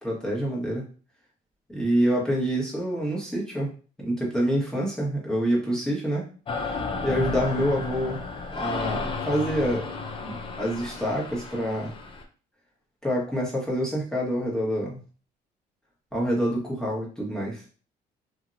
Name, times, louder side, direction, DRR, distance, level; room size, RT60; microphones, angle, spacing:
voice 1, 0.0-0.8 1.7-3.7 4.0-6.3 7.0-8.2 8.5-10.0 10.2-11.9 13.0-15.0 16.1-17.6, equal, 5° left, -4 dB, 1.2 m, -27 dB
sound 1, 6.5-12.2, left 4 dB, 30° left, 0.5 m, -33 dB
2.9 x 2.7 x 2.5 m, 0.38 s
cardioid pair, 110°, 17 cm